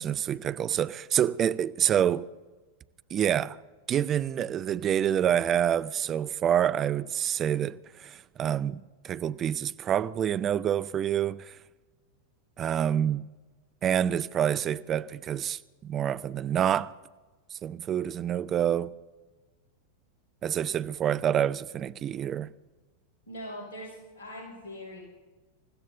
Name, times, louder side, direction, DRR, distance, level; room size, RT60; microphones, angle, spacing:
voice 1, 0.0-2.3 3.1-3.6 3.9-11.6 12.6-13.2 13.8-16.9 17.6-18.9 20.4-22.5, right 9 dB, 30° right, 0.5 m, -27 dB
voice 2, 23.3-25.0, equal, 65° left, 5.5 m, -41 dB
28.0 x 15.0 x 2.7 m
figure-of-eight pair, 90°, 0 cm